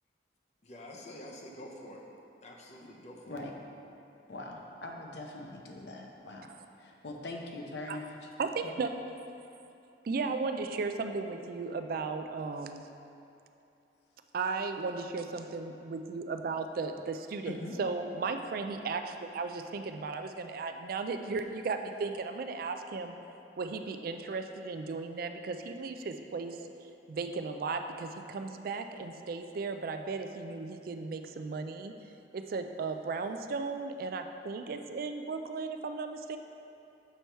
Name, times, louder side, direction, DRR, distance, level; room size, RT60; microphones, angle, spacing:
voice 1, 0.6-2.1 2.4-3.4, left 1 dB, 40° left, 0 dB, 0.7 m, -47 dB
voice 2, 4.3-6.5 6.8-8.3 8.6-8.7 17.5-17.7, left 2 dB, 70° left, 1 dB, 0.8 m, -42 dB
voice 3, 8.4-8.9 10.0-12.9 14.3-23.1 23.6-26.6 27.1-31.9 32.3-36.4, right 4 dB, 55° right, 7 dB, 0.3 m, -35 dB
6.8 x 4.6 x 4.4 m, 2.8 s
head